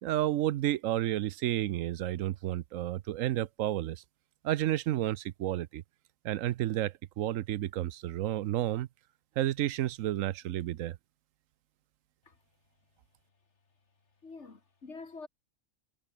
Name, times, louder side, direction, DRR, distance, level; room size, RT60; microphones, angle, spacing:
voice 1, 0.0-4.0 4.4-5.8 6.2-8.9 9.4-11.0, right 13 dB, 80° right, 1.0 m, -31 dB
voice 2, 14.2-15.3, left 4 dB, 60° left, 2.6 m, -46 dB
omnidirectional pair, 1.3 m